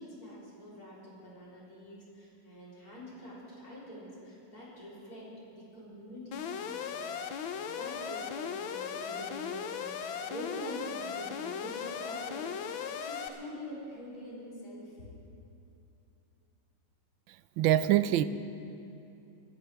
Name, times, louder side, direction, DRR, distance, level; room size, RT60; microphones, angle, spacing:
voice 1, 0.0-15.1, equal, 45° left, -7 dB, 4.4 m, -45 dB
Alarm, 6.3-13.3, left 7 dB, 75° left, 1.5 m, -37 dB
voice 2, 17.6-18.2, right 12 dB, 75° right, 14 dB, 1.3 m, -24 dB
26.0 x 13.5 x 3.5 m, 2.7 s
omnidirectional pair, 2.2 m